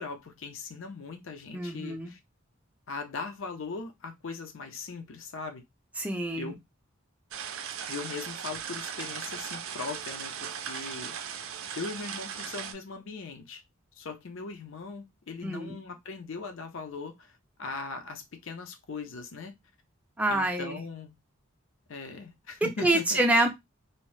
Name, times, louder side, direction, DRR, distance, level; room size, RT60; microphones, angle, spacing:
voice 1, 0.0-2.2 2.9-5.6 6.3-6.6 7.9-11.2 11.7-13.6 14.0-19.5 20.3-21.1 21.9-23.2, left 4 dB, 65° left, 0.5 m, -39 dB
voice 2, 1.5-2.1 6.0-6.5 15.4-15.8 20.2-20.9 22.8-23.5, right 1 dB, 5° right, 0.5 m, -26 dB
sound 1, 7.3-12.7, right 8 dB, 80° right, 0.5 m, -38 dB
2.7 x 2.0 x 3.1 m
head